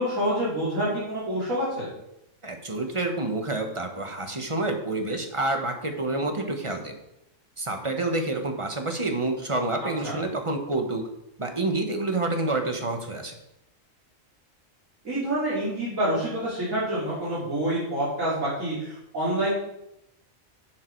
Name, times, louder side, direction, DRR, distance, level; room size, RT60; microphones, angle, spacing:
voice 1, 0.0-1.9 9.8-10.2 15.0-19.5, right 1 dB, 90° right, -9 dB, 3.7 m, -27 dB
voice 2, 2.4-6.9 7.6-11.0 11.4-13.4, right 2 dB, 25° right, 4 dB, 1.3 m, -28 dB
10.5 x 7.9 x 4.6 m, 0.83 s
omnidirectional pair, 1.4 m